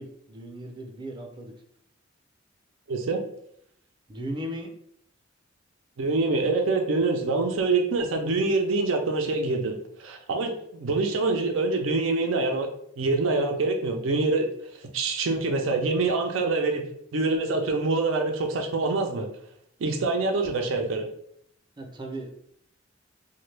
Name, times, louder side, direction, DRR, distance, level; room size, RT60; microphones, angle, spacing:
voice 1, 0.0-1.5 4.1-4.7 20.3-20.4 21.8-22.3, right 1 dB, 25° right, 2 dB, 0.5 m, -37 dB
voice 2, 2.9-3.2 6.0-12.7 13.0-14.5 14.8-16.8 17.1-19.3 19.8-21.1, right 3 dB, 85° right, 4 dB, 0.5 m, -25 dB
3.0 x 2.1 x 3.2 m, 0.70 s
head